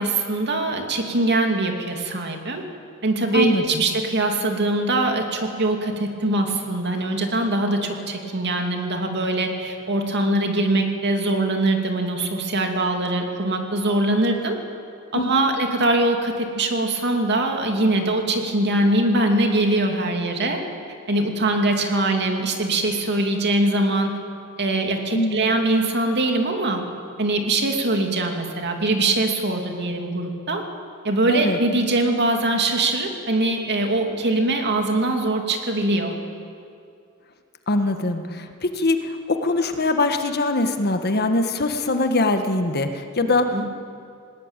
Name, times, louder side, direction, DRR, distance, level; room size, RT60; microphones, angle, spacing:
voice 1, 0.0-2.6 3.0-14.6 15.1-20.6 21.1-24.2 24.6-26.8 27.2-30.6 31.0-36.2 43.5-43.6, right 2 dB, 50° right, 3 dB, 2.7 m, -22 dB
voice 2, 3.3-3.8 15.1-15.5 25.1-25.5 31.3-31.6 37.7-43.4, left 2 dB, 45° left, 7 dB, 1.4 m, -22 dB
20.0 x 19.5 x 9.1 m, 2.4 s
head